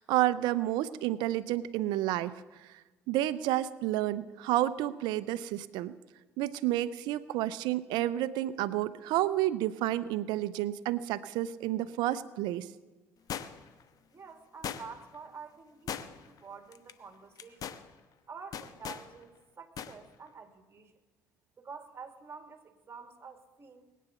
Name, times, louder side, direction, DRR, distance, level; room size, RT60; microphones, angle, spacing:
voice 1, 0.0-2.4 3.1-5.9 6.4-12.7, right 14 dB, 70° right, 15 dB, 0.7 m, -30 dB
sound 1, 13.3-13.8 14.6-15.1 15.9-16.4 16.7-16.9 17.4-17.8 18.5-19.1 19.8-20.0 20.3-20.4, left 8 dB, 50° left, 1.1 m, -39 dB
voice 2, 14.1-17.8 18.3-20.9 21.6-23.9, right 5 dB, 35° right, 7 dB, 2.4 m, -48 dB
20.5 x 9.4 x 7.1 m, 1.2 s
hypercardioid pair, 60°, 8 cm